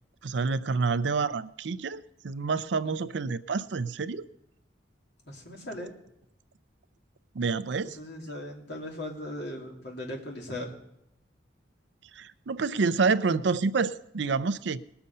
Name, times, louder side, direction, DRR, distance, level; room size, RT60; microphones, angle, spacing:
voice 1, 0.2-4.3 7.3-8.0 12.2-14.9, right 4 dB, 70° right, 15 dB, 0.5 m, -28 dB
voice 2, 2.8-3.2 5.3-5.9 7.9-10.7, left 1 dB, 60° left, 0 dB, 2.6 m, -38 dB
20.0 x 6.9 x 5.4 m, 0.82 s
head